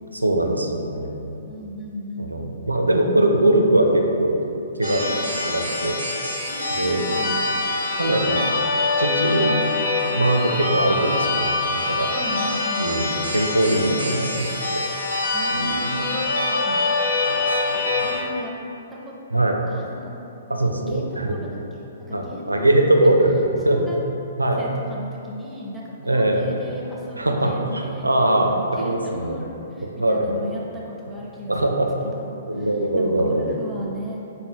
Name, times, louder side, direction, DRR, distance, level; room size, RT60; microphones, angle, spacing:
voice 1, 0.2-1.4 2.2-4.4 4.8-5.1 5.4-6.0 6.8-7.0 8.0-8.4 9.0-9.6 10.1-12.1 12.8-14.8 15.5-15.9 16.6-16.7 17.2-17.6 19.3-19.6 20.5-21.4 22.1-23.4 23.6-23.9 24.4-24.7 26.0-26.5 27.1-29.4 29.8-30.4 31.5-32.2 32.5-33.5, right 1 dB, 85° right, 2 dB, 0.4 m, -21 dB
voice 2, 1.4-2.3 5.0-5.4 6.5-7.5 12.1-12.9 15.3-17.0 18.0-18.5 18.9-19.1 19.7-20.1 20.8-23.1 23.7-24.0 24.6-28.1 28.7-31.8 32.1-32.7 33.0-34.2, equal, 5° right, -5 dB, 0.6 m, -36 dB
sound 1, 4.8-18.2, left 3 dB, 75° left, 0.8 m, -24 dB
5.7 x 2.1 x 3.5 m, 3.0 s
figure-of-eight pair, 120°, 0 cm